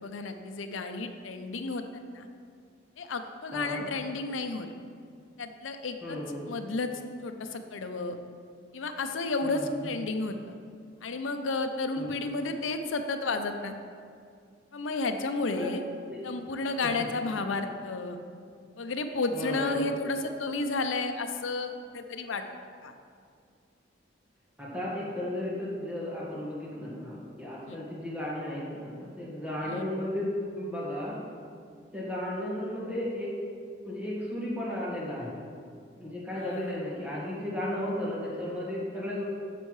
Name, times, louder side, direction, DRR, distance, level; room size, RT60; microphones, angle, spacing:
voice 1, 0.0-1.8 2.1-2.3 3.0-4.7 5.4-6.2 6.5-6.9 7.2-8.2 8.7-10.5 11.0-13.7 14.7-15.8 16.2-18.2 18.8-22.4 22.8-22.9 27.7-27.8 29.6-29.8 36.3-36.8, left 3 dB, 90° left, 7 dB, 0.6 m, -32 dB
voice 2, 3.5-3.8 6.0-6.5 9.4-9.8 11.9-12.2 15.5-15.7 16.1-16.2 19.3-20.0 24.6-31.2 31.9-33.3 33.9-35.4 36.0-39.2, left 1 dB, 10° right, -7 dB, 1.6 m, -34 dB
9.9 x 6.9 x 3.2 m, 2.3 s
head